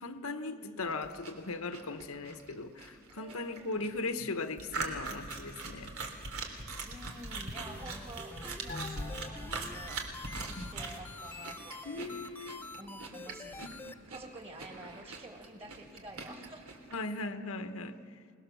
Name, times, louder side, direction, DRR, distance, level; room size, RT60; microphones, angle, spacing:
voice 1, 0.0-6.0 10.6-10.7 11.9-12.7 13.6-13.7 16.9-18.0, left 3 dB, 80° left, 8 dB, 1.2 m, -38 dB
voice 2, 0.5-1.0 3.1-3.9 6.8-11.8 12.8-13.7 14.1-16.9, right 1 dB, 30° right, 4 dB, 2.3 m, -50 dB
sound 1, 0.8-17.0, right 3 dB, 90° right, 3.2 m, -42 dB
sound 2, 7.7-13.9, left 2 dB, 10° left, 0.8 m, -47 dB
sound 3, 8.7-11.6 11.9-12.0, left 3 dB, 40° left, 1.0 m, -47 dB
28.0 x 20.0 x 7.0 m, 2.1 s
head